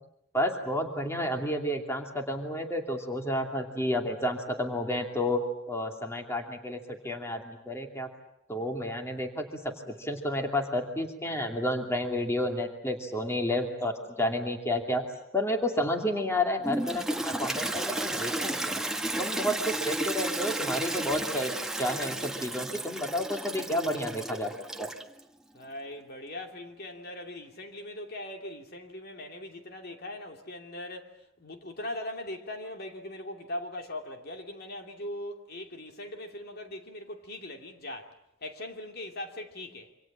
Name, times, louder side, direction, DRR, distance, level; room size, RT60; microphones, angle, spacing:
voice 1, 0.3-8.1 8.5-15.0 15.3-18.8 19.2-24.5 24.8-24.9, left 1 dB, 15° left, 2.6 m, -31 dB
Toilet flush, 16.6-25.2, right 1 dB, 5° right, 1.4 m, -33 dB
voice 2, 25.5-38.1 38.4-39.9, left 1 dB, 50° left, 2.8 m, -40 dB
27.5 x 26.5 x 7.4 m
head